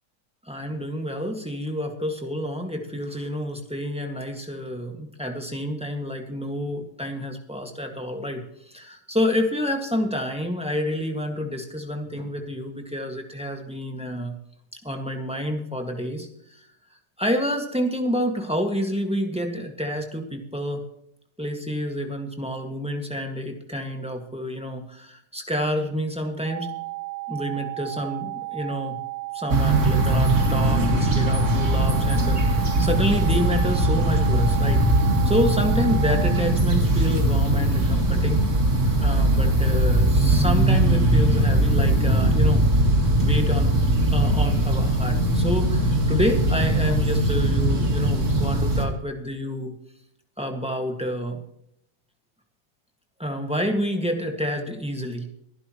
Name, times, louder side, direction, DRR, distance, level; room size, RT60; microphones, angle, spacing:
voice 1, 0.5-14.3 14.8-16.3 17.2-20.8 21.4-26.7 27.3-29.0 29.3-38.4 39.0-42.6 43.2-43.7 44.1-49.7 50.4-51.4 53.2-55.3, equal, 5° right, 3 dB, 1.8 m, -28 dB
sound 1, 26.4-36.4, right 20 dB, 70° left, 3.9 m, -34 dB
sound 2, 29.5-48.9, right 1 dB, 45° right, 2.3 m, -20 dB
23.0 x 11.5 x 3.1 m, 0.73 s
omnidirectional pair, 1.9 m